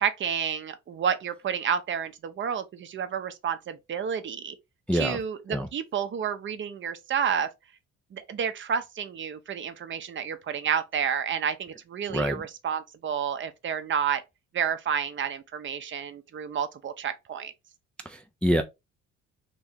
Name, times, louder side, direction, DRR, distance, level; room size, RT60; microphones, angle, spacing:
voice 1, 0.0-4.5 4.9-7.5 8.1-14.2 14.5-17.5, right 7 dB, 40° right, 0.6 m, -30 dB
voice 2, 4.9-5.2 5.5-5.7 12.1-12.4 18.1-18.6, equal, 5° left, 0.3 m, -26 dB
3.0 x 2.7 x 3.5 m
cardioid pair, 95°, 29 cm